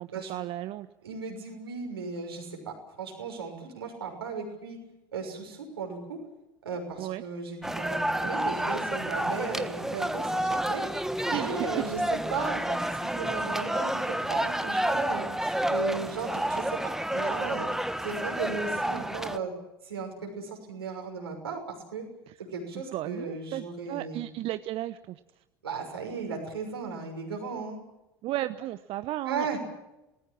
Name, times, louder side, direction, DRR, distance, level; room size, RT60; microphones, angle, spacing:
voice 1, 0.0-0.9 7.0-7.2 11.3-11.8 22.3-22.4 22.9-25.2 28.2-29.6, right 14 dB, 50° right, 13 dB, 0.9 m, -34 dB
voice 2, 1.0-4.8 5.1-6.2 6.6-10.8 11.3-17.7 18.0-19.5 19.8-21.6 21.9-22.0 22.4-24.2 25.6-27.8 29.3-29.6, right 5 dB, 80° right, 3 dB, 6.3 m, -36 dB
sound 1, 7.6-19.4, right 1 dB, 5° right, 1.3 m, -30 dB
28.0 x 19.5 x 7.4 m, 0.95 s
figure-of-eight pair, 70°, 13 cm